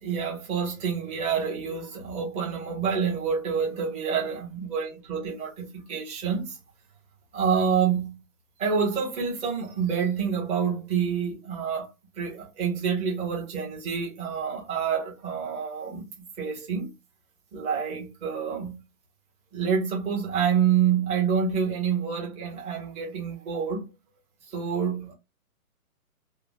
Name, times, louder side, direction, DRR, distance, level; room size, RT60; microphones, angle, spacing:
voice 1, 0.0-6.6 7.3-8.2 8.6-11.9 12.2-16.9 17.5-18.8 19.5-23.9 24.5-25.1, right 7 dB, 15° right, 1.1 m, -27 dB
3.7 x 2.2 x 2.2 m
hypercardioid pair, 140°, 43 cm